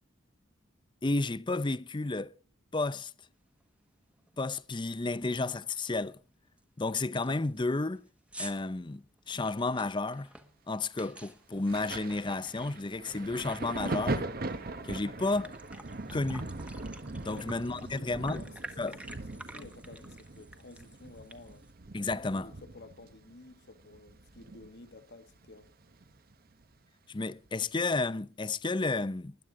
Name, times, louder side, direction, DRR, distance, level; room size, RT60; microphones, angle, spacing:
voice 1, 1.0-2.3 2.7-3.1 4.4-6.2 6.8-8.1 8.4-10.3 10.7-14.3 14.8-15.5 16.1-16.5 17.2-18.4 18.8-19.0 21.9-22.5 27.1-29.4, left 3 dB, 25° left, 0.6 m, -32 dB
sound 1, 3.6-3.7 4.1-4.4 4.7-4.8 5.2-5.5 6.0-6.1 6.6-6.7 7.0-12.9 13.2-14.5 14.9-15.0 15.3-21.7, right 1 dB, 5° right, 1.2 m, -50 dB
Thunder, 11.7-25.0 25.3-26.6 27.5-27.6, right 2 dB, 45° right, 1.0 m, -40 dB
voice 2, 17.2-21.7 22.3-25.7, left 2 dB, 55° left, 1.3 m, -52 dB
20.0 x 10.0 x 3.7 m
head